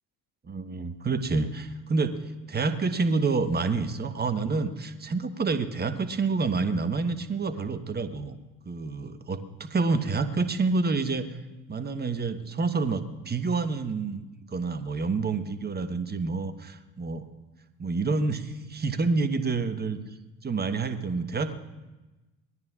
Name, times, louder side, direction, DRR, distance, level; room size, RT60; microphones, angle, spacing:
voice 1, 0.4-8.4 8.6-11.4 11.7-14.2 14.5-17.2 17.8-20.0 20.4-21.5, right 4 dB, 20° right, 10 dB, 1.2 m, -28 dB
25.0 x 19.0 x 2.5 m, 1.1 s
figure-of-eight pair, 55°, 48 cm